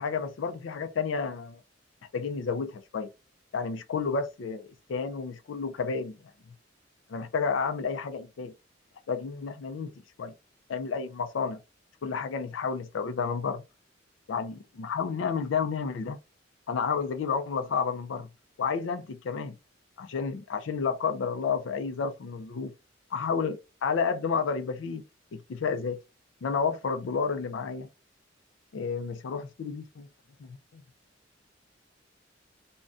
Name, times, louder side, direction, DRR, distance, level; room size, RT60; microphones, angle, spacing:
voice 1, 0.0-1.6 2.1-3.1 3.5-6.2 7.1-8.5 9.1-9.9 10.2-10.3 10.7-11.6 12.0-13.6 14.3-16.2 16.7-18.3 18.6-19.6 20.0-22.7 23.1-25.0 25.3-26.0 26.4-27.9 28.7-30.1 30.4-30.8, left 5 dB, 80° left, 0.4 m, -31 dB
2.5 x 2.1 x 3.4 m
head